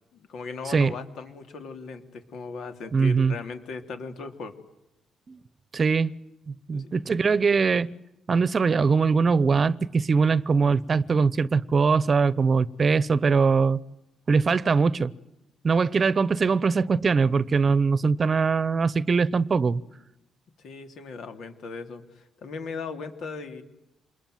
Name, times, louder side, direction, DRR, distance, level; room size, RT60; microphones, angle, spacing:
voice 1, 0.1-4.5 6.7-6.9 20.6-23.6, left 4 dB, 70° left, 3.3 m, -38 dB
voice 2, 2.9-3.3 5.3-5.4 5.7-6.1 6.5-7.9 8.3-13.8 14.3-15.1 15.6-19.8, right 5 dB, 40° right, 1.0 m, -22 dB
27.0 x 21.5 x 9.4 m
cardioid pair, 90°, 0 cm